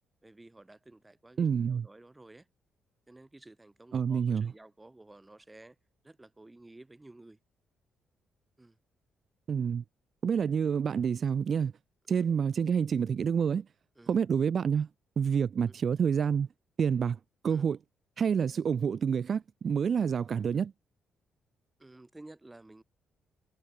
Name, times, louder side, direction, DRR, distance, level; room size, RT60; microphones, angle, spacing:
voice 1, 0.2-2.5 3.1-5.8 6.0-7.4 8.6-8.8 12.2-12.3 14.0-14.1 15.7-15.8 17.5-17.6 21.8-22.8, right 2 dB, 15° right, 3.8 m, -53 dB
voice 2, 1.4-1.9 3.9-4.5 9.5-9.8 10.2-11.7 12.1-13.7 14.1-14.9 15.2-16.5 16.8-17.2 17.4-17.8 18.2-20.7, right 7 dB, 50° right, 0.4 m, -28 dB
cardioid pair, 90°, 0 cm